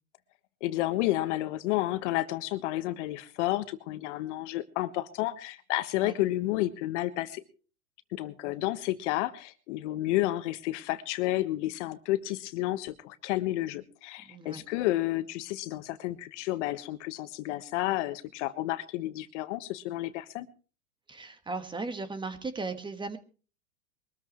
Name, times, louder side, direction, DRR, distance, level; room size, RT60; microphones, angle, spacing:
voice 1, 0.6-7.4 8.1-20.5, left 16 dB, 55° left, 12 dB, 1.5 m, -31 dB
voice 2, 14.2-14.6 21.1-23.2, right 3 dB, 10° right, 10 dB, 1.6 m, -37 dB
23.5 x 13.5 x 3.1 m, 0.37 s
hypercardioid pair, 125°, 43 cm